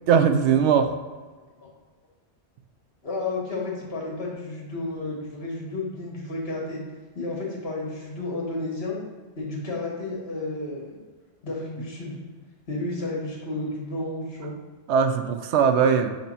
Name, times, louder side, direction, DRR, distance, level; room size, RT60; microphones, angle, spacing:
voice 1, 0.1-0.9 14.9-16.1, right 7 dB, 80° right, 8 dB, 0.9 m, -20 dB
voice 2, 3.0-6.8 7.2-9.0 9.4-11.0 11.4-12.2 12.7-14.5, left 2 dB, 60° left, -2 dB, 1.7 m, -32 dB
6.6 x 3.0 x 5.4 m, 1.4 s
omnidirectional pair, 1.2 m